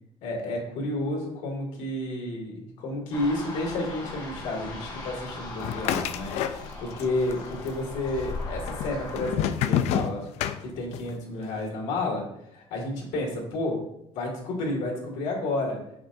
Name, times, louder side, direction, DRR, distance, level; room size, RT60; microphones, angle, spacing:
voice 1, 0.2-10.2 10.6-12.3 12.5-13.8 14.1-15.8, left 2 dB, 80° left, -1 dB, 2.1 m, -31 dB
sound 1, 3.1-9.4, left 3 dB, 35° left, 1.3 m, -38 dB
sound 2, 5.6-7.0 7.3-8.0 8.7-11.1, left 9 dB, 65° left, 0.4 m, -28 dB
6.7 x 5.9 x 2.6 m, 0.79 s
cardioid pair, 175°, 12 cm